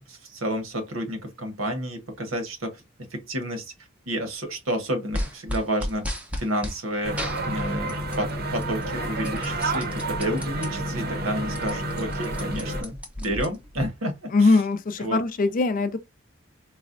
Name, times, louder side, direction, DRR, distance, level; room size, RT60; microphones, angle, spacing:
voice 1, 0.0-2.8 3.1-3.7 4.1-6.1 6.4-14.6 15.0-15.2, equal, 85° right, 1.0 m, -30 dB
sound 1, 5.1-6.8 7.2-8.3 8.6-10.7 11.1-11.2 11.4-13.9, equal, 5° right, 0.6 m, -33 dB
sound 2, 7.0-12.8, right 1 dB, 50° right, 0.7 m, -30 dB
voice 2, 14.3-16.0, left 3 dB, 40° left, 0.4 m, -21 dB
4.0 x 2.1 x 2.4 m
head